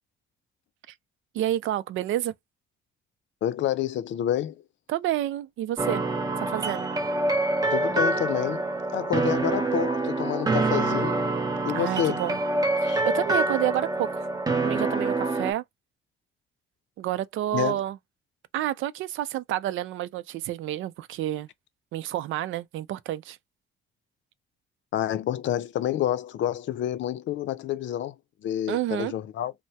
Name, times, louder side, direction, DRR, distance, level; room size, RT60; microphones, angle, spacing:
voice 1, 1.3-2.3 4.9-6.0 6.5-6.9 11.7-12.4 12.8-14.3 14.6-15.6 17.0-18.0 18.5-21.5 21.9-23.4 28.7-29.1, right 13 dB, 80° right, 0.5 m, -29 dB
voice 2, 3.4-4.6 7.7-8.6 8.9-11.3 11.6-12.2 12.8-13.0 17.5-17.8 24.9-28.2 28.4-29.5, left 11 dB, 70° left, 0.5 m, -28 dB
sound 1, 5.8-15.5, right 2 dB, 20° right, 0.8 m, -26 dB
3.3 x 2.1 x 2.8 m
cardioid pair, 90°, 20 cm